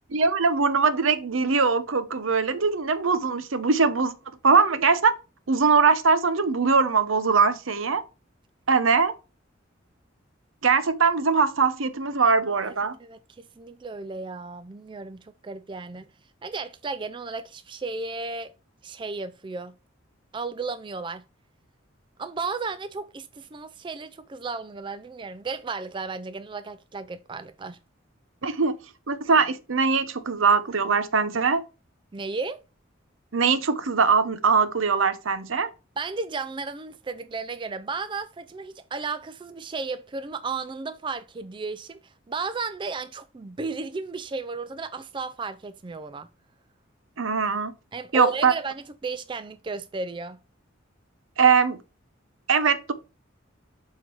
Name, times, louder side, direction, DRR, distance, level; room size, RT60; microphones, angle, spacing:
voice 1, 0.1-4.1 4.4-5.1 5.5-8.0 8.7-9.1 10.6-13.0 28.4-28.8 29.1-31.6 33.3-35.7 47.2-47.7 48.1-48.5 51.4-51.8 52.5-52.9, right 5 dB, 75° right, 0.8 m, -21 dB
voice 2, 12.7-16.1 16.4-18.5 18.8-19.7 20.3-21.2 22.2-27.8 32.1-32.6 36.0-46.3 47.9-50.4, right 4 dB, 25° right, 0.4 m, -34 dB
7.6 x 3.8 x 5.3 m
head